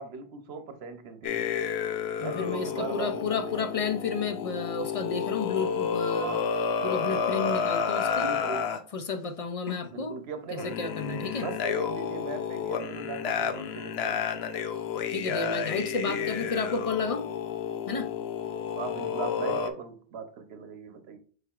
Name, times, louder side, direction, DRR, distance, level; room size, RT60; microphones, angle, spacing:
voice 1, 0.0-1.5 2.2-3.7 6.2-6.5 8.1-8.7 9.9-10.8 11.3-14.3 16.1-16.4 18.0-18.1 18.8-21.2, right 5 dB, 75° right, 1.0 m, -39 dB
sound 1, 1.2-8.8 9.7-9.9 10.6-19.7, left 7 dB, 75° left, 0.8 m, -31 dB
voice 2, 2.2-6.4 6.8-8.3 8.9-10.2 10.5-11.5 15.1-17.3 17.9-18.1, left 4 dB, 50° left, 0.4 m, -32 dB
4.7 x 4.6 x 2.3 m
omnidirectional pair, 1.1 m